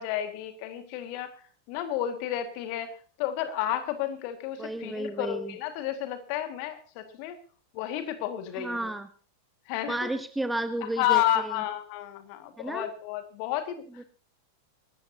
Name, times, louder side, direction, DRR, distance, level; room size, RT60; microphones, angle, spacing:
voice 1, 0.0-1.3 1.7-2.9 3.2-7.4 7.7-8.9 9.7-10.1 11.0-13.8, left 12 dB, 45° left, 8 dB, 2.0 m, -31 dB
voice 2, 4.6-5.5 8.6-9.1 9.9-11.5 12.6-12.9 14.0-14.1, right 1 dB, 5° right, 11 dB, 1.0 m, -32 dB
24.0 x 13.0 x 2.9 m, 0.39 s
figure-of-eight pair, 90°, 0 cm